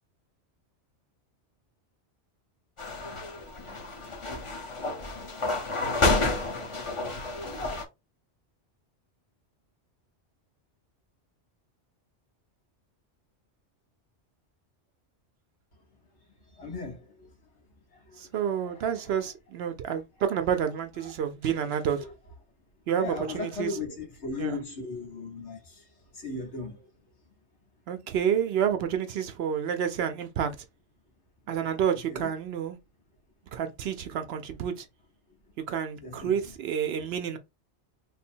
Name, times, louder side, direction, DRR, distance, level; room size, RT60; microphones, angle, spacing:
sound 1, 2.8-7.8, left 2 dB, 30° left, 0.7 m, -30 dB
voice 1, 16.6-17.3 18.1-18.3 18.6-19.0 22.9-25.8 26.1-26.8 32.1-32.3 36.0-36.4, left 3 dB, 75° left, 1.7 m, -37 dB
voice 2, 18.2-22.0 22.9-23.8 24.4-24.6 27.9-30.5 31.5-32.8 33.5-34.9 35.7-37.4, right 8 dB, 65° right, 0.8 m, -29 dB
3.3 x 2.1 x 4.3 m
omnidirectional pair, 1.2 m